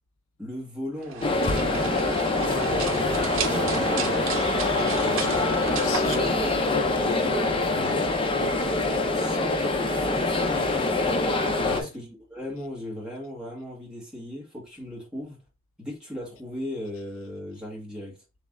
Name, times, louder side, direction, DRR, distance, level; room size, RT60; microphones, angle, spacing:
voice 1, 0.4-2.2 3.4-4.3 9.1-11.1 11.7-15.4 15.8-18.2, left 1 dB, 5° right, 1.7 m, -37 dB
sound 1, 1.0-7.2, right 6 dB, 75° right, 0.6 m, -33 dB
sound 2, 1.2-11.8, left 2 dB, 25° left, 0.5 m, -25 dB
voice 2, 2.4-3.5 4.7-8.7 11.6-11.9, left 4 dB, 75° left, 0.5 m, -36 dB
3.3 x 3.1 x 3.6 m
head